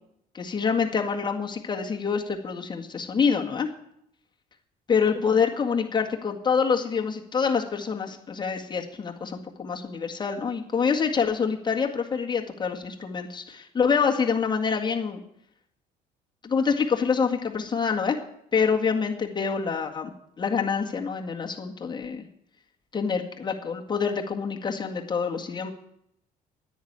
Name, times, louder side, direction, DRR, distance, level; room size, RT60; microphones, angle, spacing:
voice 1, 0.3-3.7 4.9-15.2 16.4-18.2 18.5-20.1 20.4-22.3 22.9-25.7, left 6 dB, 25° left, 0 dB, 1.8 m, -26 dB
10.0 x 9.5 x 8.8 m, 0.76 s
cardioid pair, 110°, 17 cm